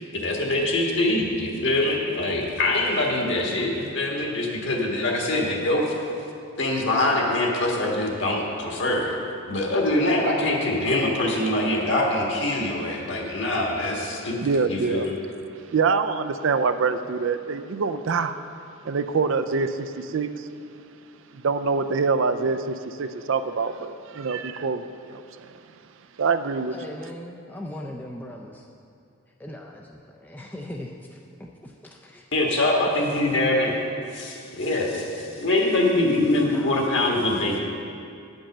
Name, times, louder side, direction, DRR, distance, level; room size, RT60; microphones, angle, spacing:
voice 1, 0.1-5.9 6.6-9.2 9.5-14.4 14.7-15.2 32.3-33.8 34.1-37.6, left 1 dB, 55° left, -1 dB, 1.6 m, -24 dB
voice 2, 14.4-15.1 15.5-18.4 18.8-20.5 21.3-25.6 26.2-26.8, right 4 dB, 60° right, 10 dB, 0.4 m, -25 dB
voice 3, 26.7-28.6 29.4-32.3 36.4-36.9, left 1 dB, 10° left, 0 dB, 0.4 m, -39 dB
10.0 x 5.4 x 7.2 m, 2.5 s
head